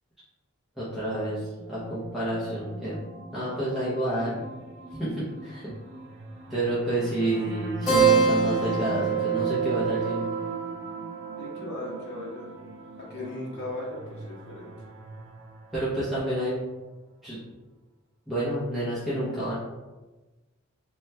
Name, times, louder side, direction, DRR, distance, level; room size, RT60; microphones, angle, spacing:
voice 1, 0.8-1.4 1.7-3.0 3.3-4.4 4.9-5.6 6.5-10.2 15.7-16.6 17.2-17.4 18.3-19.5, right 1 dB, ahead, -11 dB, 0.6 m, -29 dB
sound 1, 1.1-16.4, right 3 dB, 55° right, 0.4 m, -40 dB
Keyboard (musical), 7.9-12.8, right 6 dB, 15° left, 0.9 m, -26 dB
voice 2, 11.4-12.5 13.0-14.7, left 2 dB, 50° left, -5 dB, 0.8 m, -37 dB
2.9 x 2.2 x 3.2 m, 1.2 s
head